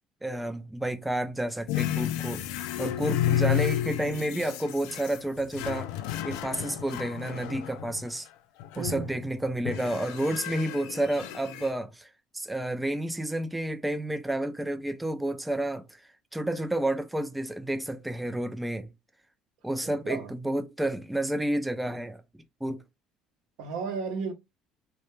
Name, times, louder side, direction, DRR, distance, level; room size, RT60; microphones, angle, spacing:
voice 1, 0.2-5.9 6.2-8.3 8.8-18.9 19.6-22.2 22.6-22.8, right 1 dB, 5° right, 0.4 m, -30 dB
sound 1, 1.7-8.1 8.6-9.2 9.7-11.7, left 11 dB, 80° left, 0.3 m, -32 dB
voice 2, 8.8-9.3 19.8-20.3 23.6-24.3, right 5 dB, 75° right, 0.7 m, -34 dB
2.2 x 2.1 x 3.1 m
supercardioid pair, 85°, 0 cm